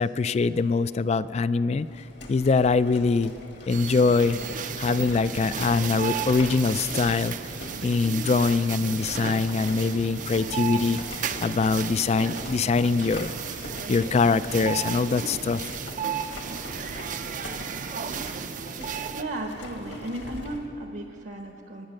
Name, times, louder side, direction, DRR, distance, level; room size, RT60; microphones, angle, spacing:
voice 1, 0.0-1.9 2.3-3.3 3.7-4.4 4.8-7.3 7.8-11.0 11.4-13.3 13.9-15.7, left 4 dB, 35° left, 15 dB, 0.3 m, -23 dB
sound 1, 1.8-20.7, left 1 dB, 60° left, 1.8 m, -42 dB
sound 2, 3.7-19.2, right 7 dB, 40° right, 0.5 m, -34 dB
voice 2, 19.1-21.9, right 1 dB, 65° right, 3 dB, 1.0 m, -35 dB
20.5 x 8.9 x 6.5 m, 2.9 s
head